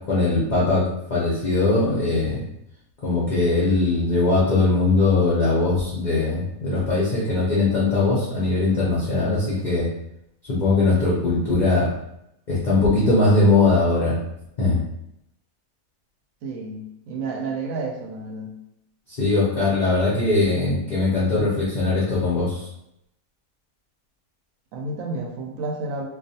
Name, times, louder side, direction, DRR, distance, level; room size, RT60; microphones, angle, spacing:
voice 1, 0.1-2.4 3.0-9.9 10.5-11.9 12.5-14.2 14.6-14.8 19.1-22.7, left 3 dB, 50° left, -7 dB, 0.6 m, -20 dB
voice 2, 16.4-18.5 24.7-26.1, right 3 dB, 70° right, 1 dB, 0.9 m, -30 dB
2.4 x 2.3 x 2.6 m, 0.81 s
omnidirectional pair, 1.5 m